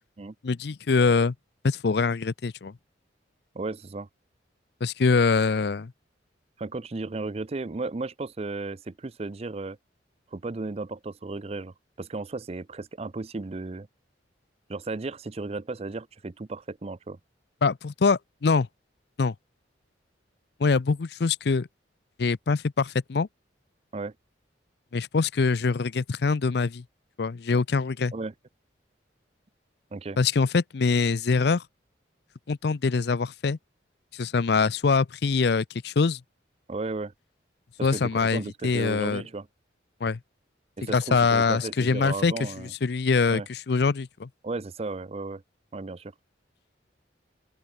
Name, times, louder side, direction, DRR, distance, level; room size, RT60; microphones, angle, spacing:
voice 1, 0.4-1.3 1.6-2.7 4.8-5.9 17.6-18.7 19.2-19.3 20.6-21.7 22.2-23.3 24.9-26.8 27.2-28.1 30.2-31.6 32.5-33.6 34.1-36.2 37.8-39.2 40.0-40.2 40.9-44.3, left 4 dB, 60° left, 0.5 m, -24 dB
voice 2, 3.5-4.1 6.6-9.8 10.3-13.9 14.7-17.2 23.9-24.1 28.1-28.3 29.9-30.2 36.7-37.1 37.8-39.5 40.8-42.7 43.3-43.5 44.4-45.4 45.7-46.1, right 3 dB, 35° right, 0.5 m, -34 dB
open air
head